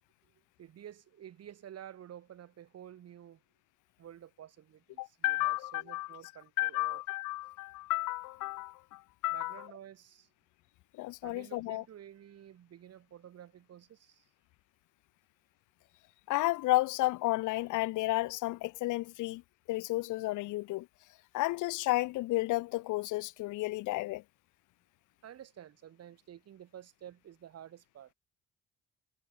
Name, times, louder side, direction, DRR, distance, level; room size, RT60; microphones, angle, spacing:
voice 1, 0.6-3.4 4.0-7.0 9.3-10.3 11.2-14.3 25.2-28.1, right 10 dB, 55° right, 2.9 m, -51 dB
voice 2, 5.0-6.2 6.6-9.7 10.9-11.8 16.3-19.4 19.7-20.9 21.3-24.2, left 19 dB, 85° left, 0.7 m, -32 dB
cardioid pair, 115°, 30 cm